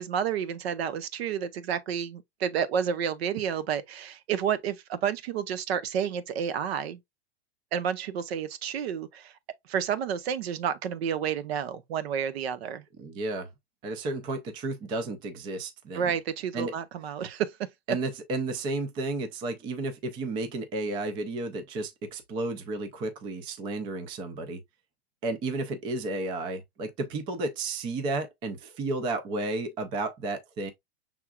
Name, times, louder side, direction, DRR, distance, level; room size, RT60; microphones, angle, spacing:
voice 1, 0.0-7.0 7.7-9.3 9.7-12.8 15.9-17.5, right 8 dB, 70° right, 0.9 m, -30 dB
voice 2, 13.0-13.5 13.8-16.2 16.5-16.7 17.9-24.6 25.2-30.7, right 2 dB, 15° right, 0.4 m, -32 dB
5.9 x 3.5 x 2.3 m
supercardioid pair, 160°, 32 cm